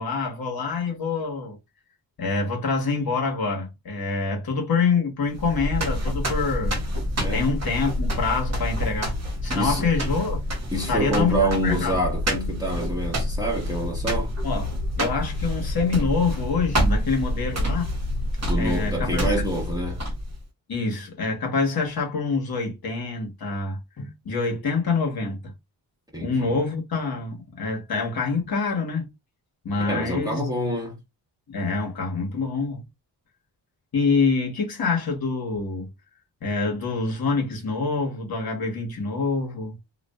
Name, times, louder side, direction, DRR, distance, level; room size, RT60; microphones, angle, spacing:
voice 1, 0.0-1.6 2.2-6.7 7.3-9.1 9.4-10.4 10.9-12.0 14.4-17.9 18.5-19.3 20.7-25.5 26.2-29.1 29.6-30.4 31.5-32.8 33.9-35.9 36.4-39.7, left 4 dB, 50° left, 1.2 m, -26 dB
sound 1, 5.3-20.4, equal, 35° right, 1.1 m, -27 dB
voice 2, 7.2-7.5 9.5-9.9 10.7-14.3 18.5-20.0 26.1-26.5 29.8-31.0, right 1 dB, 10° right, 1.2 m, -27 dB
2.5 x 2.3 x 2.2 m
supercardioid pair, 55°, 45 cm